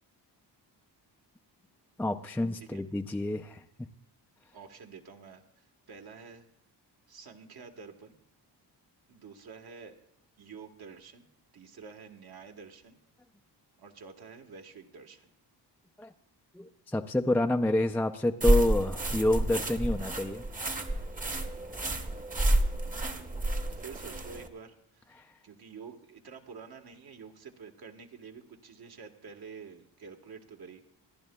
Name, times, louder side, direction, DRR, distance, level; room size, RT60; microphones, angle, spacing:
voice 1, 2.0-3.6 16.0-16.1 16.5-20.5 25.2-25.3, left 1 dB, 5° left, 4 dB, 0.4 m, -28 dB
voice 2, 4.5-6.5 7.1-8.2 9.1-10.0 10.4-13.0 13.8-15.3 22.9-25.1 25.4-30.8, right 5 dB, 60° right, 4 dB, 1.3 m, -49 dB
sound 1, 18.4-24.5, right 1 dB, 20° right, 0.9 m, -29 dB
26.0 x 10.5 x 2.2 m, 0.72 s
cardioid pair, 110°, 42 cm